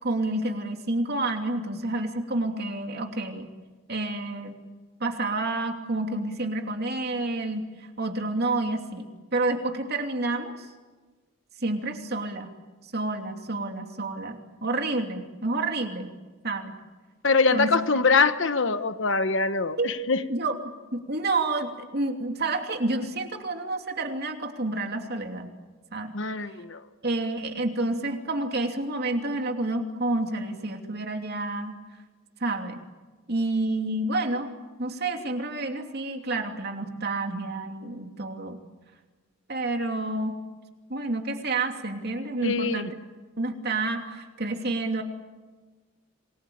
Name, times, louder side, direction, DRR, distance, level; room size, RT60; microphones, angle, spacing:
voice 1, 0.0-3.5 3.9-4.6 5.0-7.7 8.0-10.5 11.6-12.5 12.9-16.1 16.4-16.8 17.5-17.7 19.8-19.9 20.3-25.5 25.9-26.1 27.0-31.8 32.4-32.8 33.3-34.5 34.8-38.6 39.5-40.4 40.9-42.9 43.4-45.0, right 2 dB, 50° right, 4 dB, 2.9 m, -29 dB
voice 2, 17.2-20.2 26.1-26.8 42.4-42.9, left 4 dB, 60° left, 11 dB, 1.2 m, -23 dB
27.0 x 21.5 x 8.7 m, 1.3 s
head